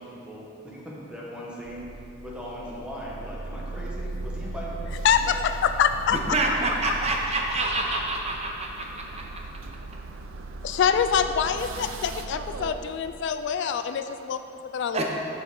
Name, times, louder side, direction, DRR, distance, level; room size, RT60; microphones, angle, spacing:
voice 1, 0.0-4.9 5.2-5.4, equal, 5° right, -6 dB, 1.4 m, -39 dB
sound 1, 1.7-12.7, right 2 dB, 85° right, 0.5 m, -37 dB
voice 2, 5.0-6.2 6.9-7.0 10.6-15.0, left 7 dB, 65° left, 10 dB, 0.3 m, -25 dB
voice 3, 6.1-9.4 14.9-15.0, right 2 dB, 35° right, 0 dB, 0.7 m, -27 dB
8.0 x 7.0 x 3.8 m, 2.7 s
head